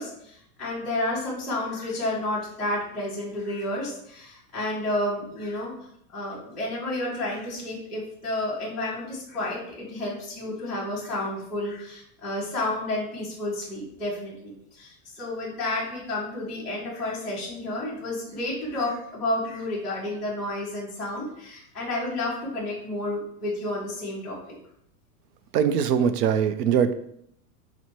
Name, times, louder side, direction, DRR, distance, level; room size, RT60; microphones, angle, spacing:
voice 1, 0.0-5.7 6.1-24.4, left 1 dB, ahead, -13 dB, 0.5 m, -31 dB
voice 2, 25.5-26.9, right 8 dB, 80° right, 11 dB, 0.5 m, -22 dB
4.2 x 2.1 x 4.4 m, 0.71 s
supercardioid pair, 175°, 47 cm